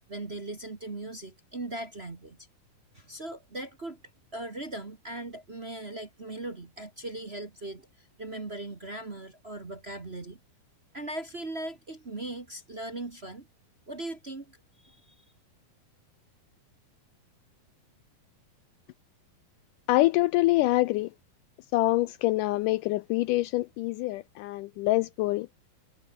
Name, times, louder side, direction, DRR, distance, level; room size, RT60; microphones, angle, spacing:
voice 1, 0.1-2.4 2.9-4.0 4.3-10.4 10.9-13.5 13.9-15.1, right 2 dB, 40° right, 0.9 m, -39 dB
voice 2, 19.9-21.1 21.7-25.5, left 18 dB, 85° left, 1.8 m, -25 dB
omnidirectional pair, 4.3 m